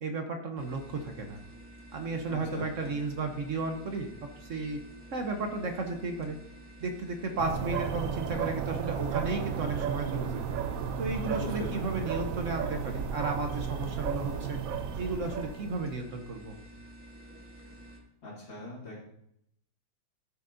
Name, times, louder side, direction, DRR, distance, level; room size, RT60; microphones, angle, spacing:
voice 1, 0.0-1.4 1.9-4.1 4.4-4.8 5.1-6.4 6.8-10.4 11.0-14.6 15.0-16.5, right 3 dB, 50° right, 5 dB, 1.0 m, -34 dB
sound 1, 0.6-18.0, right 1 dB, 10° right, 0.8 m, -50 dB
voice 2, 2.3-2.9 11.3-11.8 18.2-19.0, left 2 dB, 80° left, -10 dB, 3.2 m, -40 dB
sound 2, 7.4-15.9, right 7 dB, 80° right, 0.7 m, -33 dB
14.5 x 7.1 x 2.6 m, 0.75 s
omnidirectional pair, 2.1 m